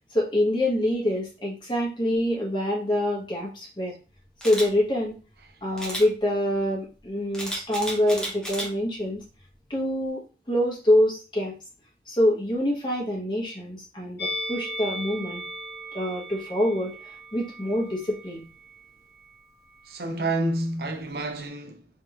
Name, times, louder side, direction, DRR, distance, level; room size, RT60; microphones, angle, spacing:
voice 1, 0.1-4.0 4.4-5.2 5.6-9.2 9.7-11.5 12.1-15.4 15.9-18.5, left 1 dB, 25° left, 1.1 m, -25 dB
Camera, 4.4-4.7 5.8-6.0 7.3-8.7 9.2-9.4, equal, 5° left, 0.8 m, -32 dB
Musical instrument, 14.2-19.4 19.7-19.9, equal, 60° left, 1.1 m, -37 dB
voice 2, 19.8-21.9, right 2 dB, 55° right, 0.5 m, -29 dB
3.4 x 3.1 x 2.9 m
head